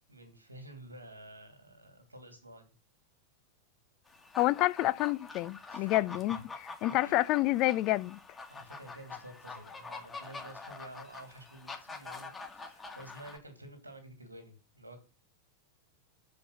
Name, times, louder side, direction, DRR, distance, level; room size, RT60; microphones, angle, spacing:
voice 1, 0.1-2.7 5.7-5.9 6.9-7.1 8.5-15.0, right 1 dB, 80° right, 2.4 m, -51 dB
sound 1, 4.1-13.4, left 4 dB, 15° left, 1.5 m, -46 dB
voice 2, 4.4-8.2, left 17 dB, 40° left, 0.4 m, -29 dB
7.1 x 5.3 x 6.7 m
figure-of-eight pair, 90°, 0 cm